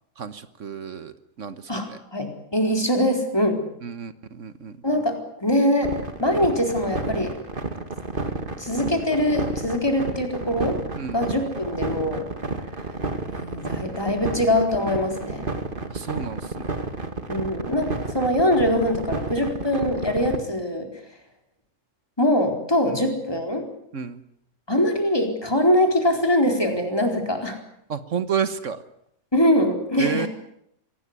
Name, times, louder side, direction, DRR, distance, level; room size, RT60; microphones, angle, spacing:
voice 1, 0.2-2.0 3.8-4.8 11.0-11.3 15.9-16.8 17.9-18.0 22.8-23.0 23.9-24.2 27.9-28.8 30.0-30.3, right 7 dB, 75° right, 12 dB, 1.6 m, -31 dB
voice 2, 1.7-3.6 4.8-5.9 6.2-7.3 8.6-10.8 11.1-12.3 13.2-15.4 17.3-20.9 22.2-23.6 24.7-27.6 29.3-30.3, left 1 dB, 20° left, 4 dB, 4.4 m, -23 dB
sound 1, 5.8-20.4, right 3 dB, 45° right, 2.3 m, -30 dB
25.5 x 18.0 x 9.7 m, 0.74 s
omnidirectional pair, 1.3 m